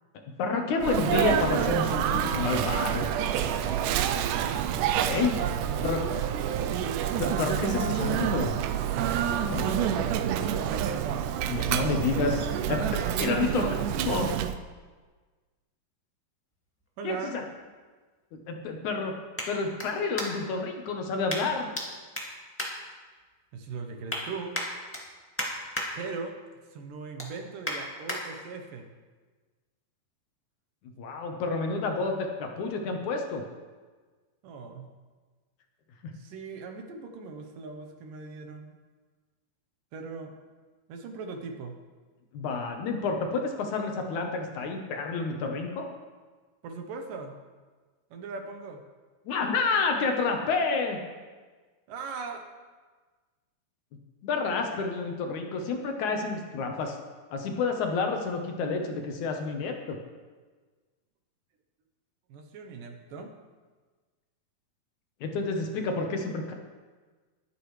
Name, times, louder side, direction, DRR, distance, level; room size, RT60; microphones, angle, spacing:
voice 1, 0.4-3.1 5.1-5.4 5.8-6.0 7.2-8.5 9.4-10.0 11.4-12.4 12.7-13.8 14.0-14.3 17.0-17.4 18.3-19.1 19.5-21.7 31.0-33.4 36.0-36.1 42.3-45.9 49.3-51.0 54.2-57.0 57.3-60.0 65.2-66.5, left 4 dB, 65° left, 3 dB, 2.2 m, -29 dB
Sneeze, 0.8-14.6, right 9 dB, 85° right, 1.8 m, -28 dB
voice 2, 5.5-6.1 10.1-10.7 17.0-17.3 23.5-24.5 26.0-26.4 26.7-28.8 34.4-34.9 36.1-38.8 39.9-40.3 40.9-41.8 46.6-47.4 48.1-48.8 51.9-52.4 62.3-63.3, right 4 dB, 70° right, 4 dB, 2.4 m, -39 dB
sound 1, 16.5-20.6 21.3-21.8 22.1-23.4 23.8-24.2 24.5-25.9 26.3-26.5 26.9-28.2 28.7-28.8, equal, 20° left, 0.4 m, -36 dB
22.0 x 8.3 x 3.2 m, 1.4 s
omnidirectional pair, 4.3 m